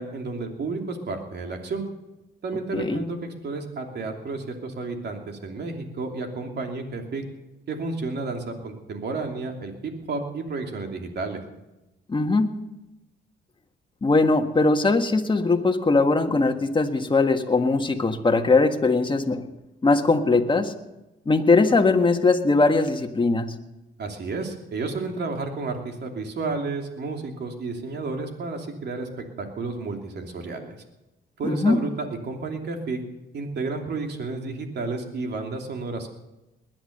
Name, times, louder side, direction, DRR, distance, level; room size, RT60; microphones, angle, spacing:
voice 1, 0.0-1.9 2.4-7.2 7.7-11.4 24.0-30.8 31.4-33.0 33.3-36.1, right 3 dB, 55° right, 3 dB, 3.0 m, -31 dB
voice 2, 12.1-12.5 14.0-19.4 19.8-20.7 21.2-23.5 31.4-31.8, left 3 dB, 25° left, 5 dB, 1.6 m, -20 dB
20.0 x 10.5 x 6.7 m, 1.0 s
cardioid pair, 90°, 20 cm